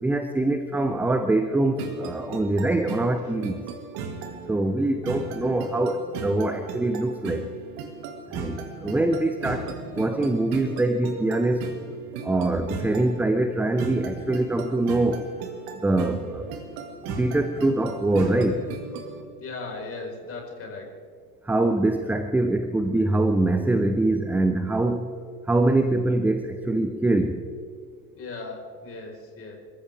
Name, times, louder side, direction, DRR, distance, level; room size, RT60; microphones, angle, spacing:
voice 1, 0.0-3.6 4.5-7.5 8.3-11.7 12.2-15.2 15.7-16.5 17.1-18.7 21.4-25.2 25.5-27.4, right 2 dB, 5° right, 8 dB, 0.6 m, -24 dB
sound 1, 1.8-19.2, right 5 dB, 45° right, 2.2 m, -37 dB
voice 2, 19.4-20.9 28.1-29.6, left 3 dB, 30° left, 1 dB, 4.5 m, -37 dB
27.5 x 14.0 x 3.5 m, 2.1 s
figure-of-eight pair, 80°, 48 cm